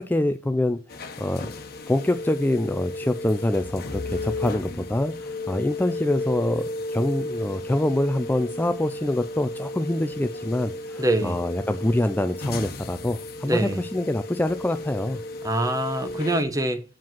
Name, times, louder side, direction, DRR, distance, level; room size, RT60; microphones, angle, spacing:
voice 1, 0.0-1.5 1.9-15.2, left 1 dB, 10° left, 0.3 m, -25 dB
sound 1, 0.9-16.4, left 2 dB, 50° left, 1.1 m, -34 dB
voice 2, 11.0-11.4 13.4-13.8 15.4-16.8, right 1 dB, 15° right, 0.8 m, -24 dB
7.5 x 5.0 x 5.6 m
head